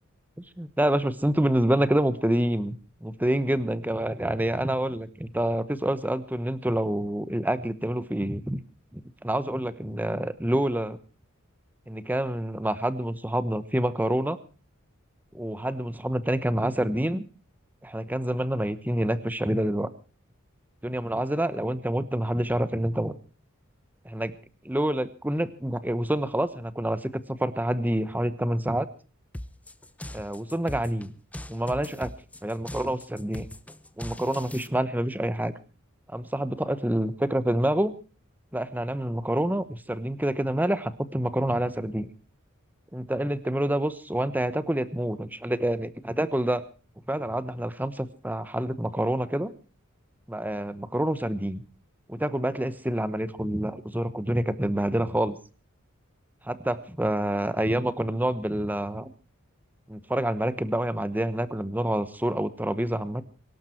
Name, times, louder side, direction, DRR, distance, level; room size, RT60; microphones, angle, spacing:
voice 1, 0.6-8.6 8.9-11.0 11.9-14.4 15.3-17.2 17.8-19.9 20.8-23.2 24.0-24.3 24.6-28.9 30.1-31.1 31.5-32.1 32.4-33.5 34.0-35.5 36.1-37.9 38.5-42.1 42.9-46.6 47.1-49.5 50.3-51.6 52.1-55.4 56.4-59.1 59.9-63.2, right 1 dB, 10° right, 13 dB, 1.1 m, -27 dB
sound 1, 29.3-34.7, left 1 dB, 5° left, 0.7 m, -40 dB
24.0 x 12.0 x 4.5 m, 0.37 s
head